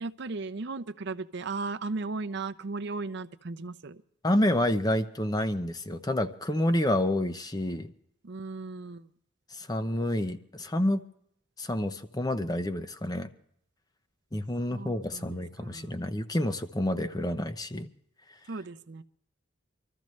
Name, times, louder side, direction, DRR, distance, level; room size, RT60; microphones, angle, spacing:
voice 1, 0.0-4.0 8.2-9.1 14.7-16.0 18.5-19.0, right 3 dB, 55° right, 10 dB, 0.6 m, -36 dB
voice 2, 4.2-7.9 9.5-11.0 11.6-13.3 14.3-17.9, left 1 dB, 20° left, 10 dB, 0.7 m, -29 dB
25.0 x 13.5 x 3.2 m, 0.70 s
head